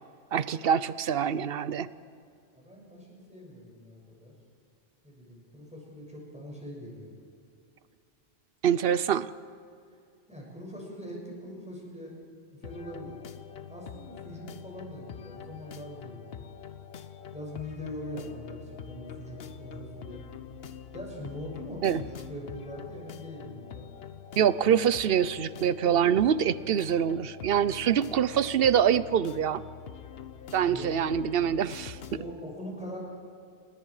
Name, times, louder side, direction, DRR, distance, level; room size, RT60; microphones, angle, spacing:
voice 1, 0.3-1.9 8.6-9.3 21.8-22.0 24.4-29.6 30.5-32.0, right 8 dB, 65° right, 16 dB, 0.9 m, -25 dB
voice 2, 2.5-4.3 5.0-7.1 10.3-12.1 12.5-13.2 13.7-16.4 17.3-20.2 20.9-23.9 30.6-30.9 32.1-33.0, equal, 5° right, -3 dB, 6.7 m, -42 dB
sound 1, 12.6-32.3, left 7 dB, 70° left, 1.1 m, -44 dB
28.5 x 20.0 x 4.9 m, 2.4 s
omnidirectional pair, 1.1 m